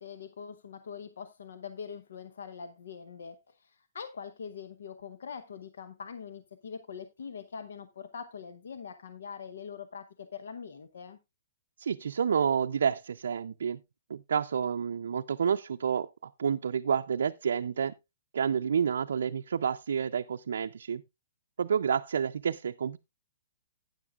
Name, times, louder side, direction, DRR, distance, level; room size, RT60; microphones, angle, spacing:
voice 1, 0.0-11.2, left 6 dB, 85° left, 0.9 m, -43 dB
voice 2, 11.8-13.8 14.1-16.1 16.4-17.9 18.3-21.0 21.6-23.0, right 7 dB, 85° right, 0.4 m, -29 dB
12.0 x 9.3 x 2.4 m
hypercardioid pair, 165°, 0 cm